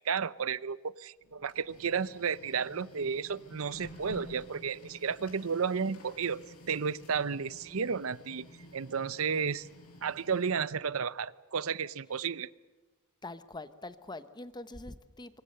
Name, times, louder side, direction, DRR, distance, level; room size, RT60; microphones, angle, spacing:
voice 1, 0.0-8.5 8.7-9.7 10.0-12.5, right 6 dB, 65° right, 19 dB, 0.7 m, -32 dB
Printer, 1.2-11.0, equal, 90° left, 7.8 m, -52 dB
voice 2, 13.2-15.4, left 2 dB, 20° left, 13 dB, 1.0 m, -44 dB
25.5 x 24.0 x 6.7 m, 1.3 s
head